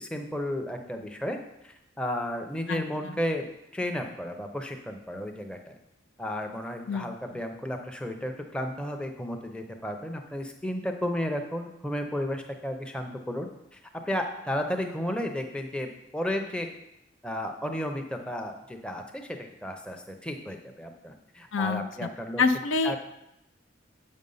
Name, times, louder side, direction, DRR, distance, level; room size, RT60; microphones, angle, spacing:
voice 1, 0.0-1.4 1.6-3.4 3.7-5.7 6.2-13.8 14.1-16.7 17.2-22.4 22.8-23.0, left 1 dB, 5° left, 4 dB, 0.6 m, -33 dB
voice 2, 2.7-3.1 6.9-7.1 21.5-22.1 22.4-23.0, left 4 dB, 80° left, 9 dB, 0.5 m, -27 dB
7.0 x 5.3 x 5.4 m, 0.86 s
head